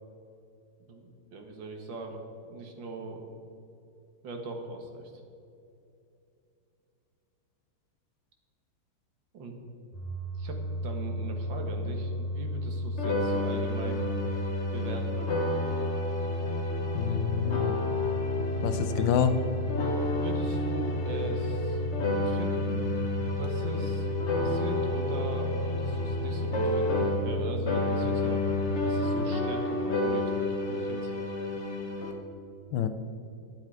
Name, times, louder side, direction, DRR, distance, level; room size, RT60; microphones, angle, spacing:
voice 1, 0.8-2.2 2.5-3.3 4.2-5.1 9.3-9.6 10.3-14.1 14.7-15.3 19.0-19.1 20.0-21.8 22.1-22.8 23.4-28.5 28.8-31.1, right 2 dB, 70° right, 3 dB, 2.1 m, -40 dB
sound 1, 9.9-29.1, left 1 dB, ahead, 2.4 m, -33 dB
sound 2, 13.0-27.4 27.7-32.1, left 2 dB, 40° left, 1.3 m, -31 dB
voice 2, 16.9-17.7 18.6-19.3 32.7-32.9, left 9 dB, 75° left, 10 dB, 1.3 m, -27 dB
12.0 x 9.6 x 4.9 m, 2.7 s
omnidirectional pair, 2.2 m